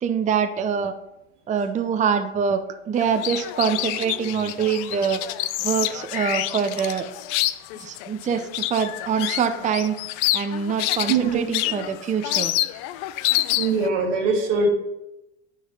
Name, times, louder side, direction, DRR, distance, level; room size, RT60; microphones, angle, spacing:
voice 1, 0.0-0.9 1.5-5.2 5.6-7.1 7.7-10.0 10.3-12.5, right 6 dB, 20° right, 8 dB, 0.5 m, -24 dB
sound 1, 3.0-13.9, left 15 dB, 55° left, 0.5 m, -27 dB
voice 2, 11.1-11.4 13.6-14.7, right 4 dB, 80° right, 2 dB, 1.8 m, -22 dB
9.4 x 3.9 x 5.4 m, 0.92 s
hypercardioid pair, 80°, 36 cm